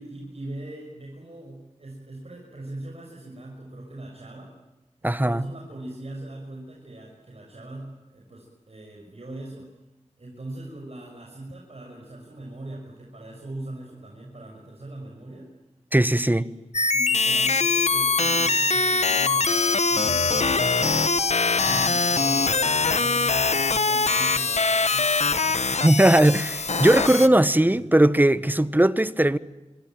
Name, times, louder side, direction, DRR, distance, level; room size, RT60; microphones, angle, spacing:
voice 1, 0.0-4.5 5.0-9.7 10.2-15.5 16.0-16.6 16.9-25.8 27.0-27.3 27.6-27.9 28.4-28.6, right 1 dB, 60° right, 6.5 m, -40 dB
voice 2, 5.0-5.4 15.9-16.4 25.8-29.4, right 1 dB, 15° right, 1.2 m, -19 dB
sound 1, 16.7-27.3, left 4 dB, 75° left, 1.2 m, -22 dB
27.0 x 24.5 x 9.1 m
wide cardioid pair, 60°, 12 cm